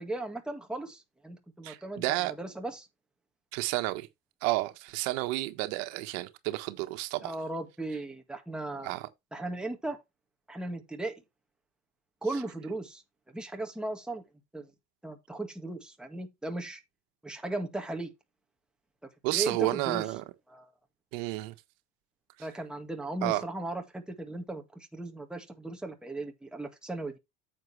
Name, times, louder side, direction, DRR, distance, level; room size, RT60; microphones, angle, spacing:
voice 1, 0.0-2.9 7.2-8.9 9.3-10.0 10.5-11.1 12.2-13.0 13.3-14.2 14.5-14.7 15.0-16.8 17.2-18.1 19.3-20.1 20.5-20.7 22.4-27.1, right 2 dB, ahead, 1.8 m, -37 dB
voice 2, 1.6-2.3 3.5-4.1 4.4-7.3 8.8-9.1 19.2-20.2 21.1-21.5 22.4-22.5 23.2-23.4, right 19 dB, 80° right, 1.4 m, -31 dB
9.2 x 7.4 x 3.3 m
cardioid pair, 140°, 37 cm